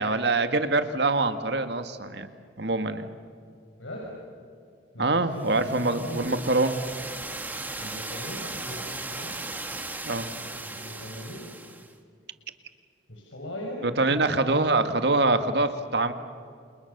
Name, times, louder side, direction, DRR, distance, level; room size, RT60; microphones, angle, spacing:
voice 1, 0.0-2.3 2.6-3.1 5.0-6.8 10.1-10.3 13.8-16.1, right 2 dB, 60° right, 9 dB, 1.8 m, -24 dB
voice 2, 4.9-6.3 7.8-9.4 10.3-11.4 13.1-13.8 14.1-14.5, left 1 dB, 85° left, -2 dB, 6.1 m, -39 dB
sound 1, 5.4-11.9, right 2 dB, 10° right, 1.7 m, -37 dB
29.0 x 28.5 x 6.8 m, 2.3 s
head